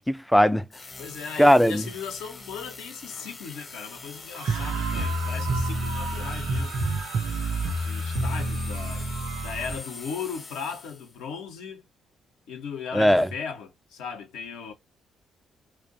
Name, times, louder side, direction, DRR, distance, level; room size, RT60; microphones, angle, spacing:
voice 1, 0.1-0.6 1.4-1.8 12.9-13.3, equal, 5° left, 0.3 m, -18 dB
sound 1, 0.7-11.3, left 3 dB, 35° left, 0.8 m, -44 dB
voice 2, 1.0-6.8 7.7-9.1 9.4-11.9 12.5-14.7, left 6 dB, 70° left, 0.6 m, -37 dB
sound 2, 4.2-10.0, right 5 dB, 80° right, 0.9 m, -39 dB
sound 3, 4.5-9.8, right 1 dB, 55° right, 0.5 m, -29 dB
2.5 x 2.1 x 2.5 m
figure-of-eight pair, 40°, 0 cm